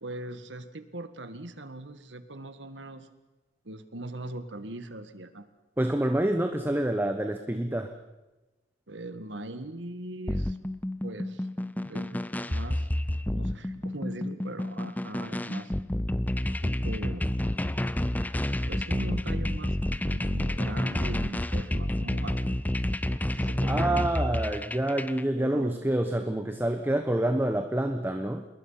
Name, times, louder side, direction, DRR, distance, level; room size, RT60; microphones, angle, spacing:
voice 1, 0.0-3.1 3.7-5.5 8.9-10.6 11.0-11.5 11.9-12.9 13.3-15.7 16.6-17.3 18.7-22.6 23.1-24.1 25.4-25.9, right 1 dB, 70° right, 10 dB, 1.9 m, -40 dB
voice 2, 5.8-7.9 23.7-28.5, right 1 dB, 10° right, 6 dB, 1.1 m, -27 dB
sound 1, 10.3-25.2, left 1 dB, 10° left, 0.7 m, -29 dB
27.0 x 21.5 x 5.8 m, 1.1 s
head